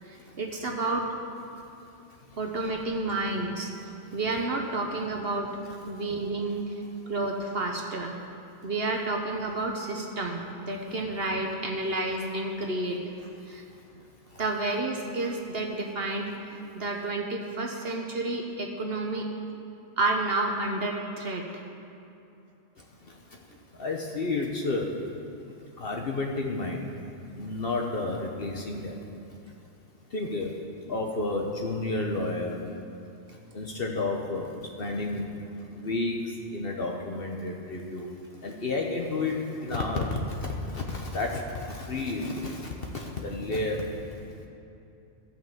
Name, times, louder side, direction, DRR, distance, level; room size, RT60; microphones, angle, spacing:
voice 1, 0.0-1.1 2.4-3.7 4.1-5.5 5.9-6.8 7.1-8.2 8.6-13.0 13.5-13.6 14.4-19.3 20.0-21.6, right 2 dB, 55° right, 1 dB, 1.0 m, -30 dB
voice 2, 23.8-24.9 25.8-26.8 27.4-29.0 30.1-30.5 30.9-32.6 33.5-34.5 34.8-35.2 35.7-36.2 36.5-38.1 38.4-43.8, left 2 dB, 50° left, 1 dB, 1.1 m, -31 dB
14.0 x 5.8 x 7.3 m, 2.7 s
omnidirectional pair, 1.3 m